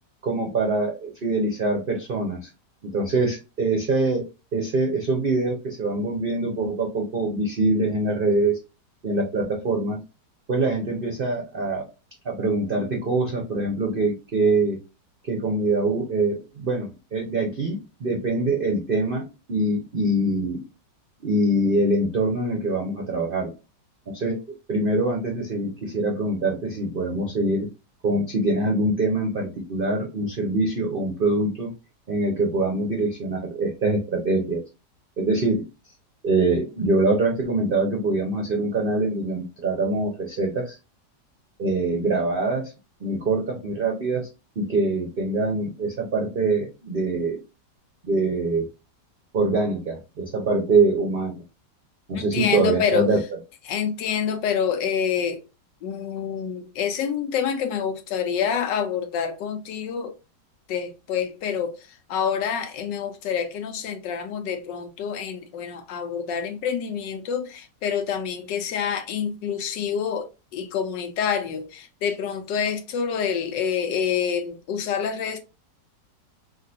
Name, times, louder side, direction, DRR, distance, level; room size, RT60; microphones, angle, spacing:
voice 1, 0.2-2.5 2.8-4.2 4.5-8.6 9.0-10.0 10.5-11.8 12.2-14.8 15.2-19.2 19.5-20.6 21.2-23.5 24.1-24.4 24.7-27.7 28.0-31.7 32.1-34.6 35.2-35.6 36.2-40.8 41.6-42.7 43.0-44.3 44.6-47.4 48.0-48.7 49.3-51.4 52.1-53.2, right 2 dB, 55° right, 0.6 m, -24 dB
voice 2, 52.1-53.1 53.7-55.4 55.8-60.1 60.7-75.4, left 7 dB, 85° left, 1.4 m, -27 dB
3.7 x 2.4 x 2.6 m
omnidirectional pair, 1.9 m